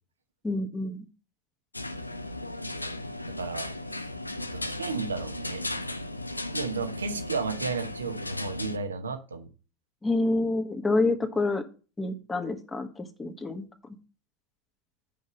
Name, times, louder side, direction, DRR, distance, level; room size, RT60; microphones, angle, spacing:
voice 1, 0.4-1.0 10.0-11.6 12.0-13.7, left 2 dB, 15° left, 6 dB, 1.4 m, -28 dB
sound 1, 1.7-8.8, left 1 dB, 90° left, 0.5 m, -36 dB
voice 2, 3.4-4.1 4.4-5.6 6.5-9.5, right 4 dB, 80° right, 8 dB, 1.1 m, -33 dB
8.7 x 5.4 x 5.2 m, 0.35 s
figure-of-eight pair, 85°, 0 cm